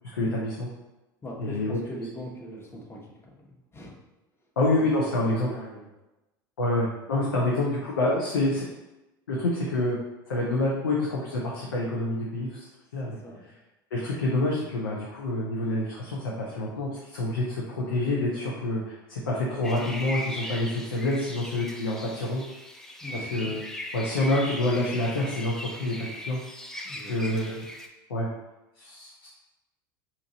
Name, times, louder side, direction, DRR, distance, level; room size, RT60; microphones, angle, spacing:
voice 1, 0.1-0.7 1.4-1.8 4.6-5.5 6.6-8.7 9.3-10.0 10.3-12.7 12.9-13.2 13.9-22.4 23.1-23.6 23.9-26.4 27.1-27.6 28.1-28.3 28.8-29.3, left 1 dB, 90° left, -4 dB, 0.6 m, -27 dB
voice 2, 1.2-3.9 5.1-5.9 13.0-13.5 23.0-23.3 26.8-27.6, equal, 20° left, -1 dB, 0.9 m, -41 dB
sound 1, 19.6-27.9, left 1 dB, 5° left, 0.4 m, -39 dB
2.9 x 2.5 x 3.9 m, 1.0 s
hypercardioid pair, 80°, 12 cm